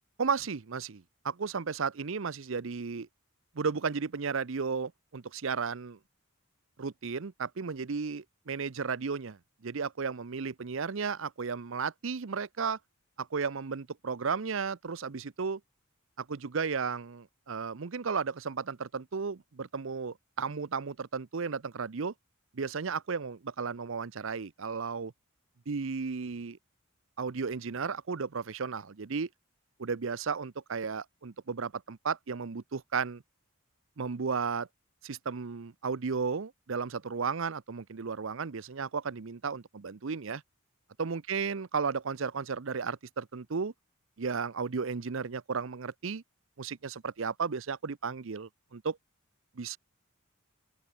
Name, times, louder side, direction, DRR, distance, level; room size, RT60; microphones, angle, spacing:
voice 1, 0.2-3.1 3.6-6.0 6.8-12.8 13.2-15.6 16.2-22.1 22.5-25.1 25.7-26.6 27.2-29.3 29.8-33.2 34.0-34.7 35.0-40.4 41.0-43.7 44.2-46.2 46.6-49.0 49.6-49.8, right 5 dB, 65° right, 0.6 m, -34 dB
open air
head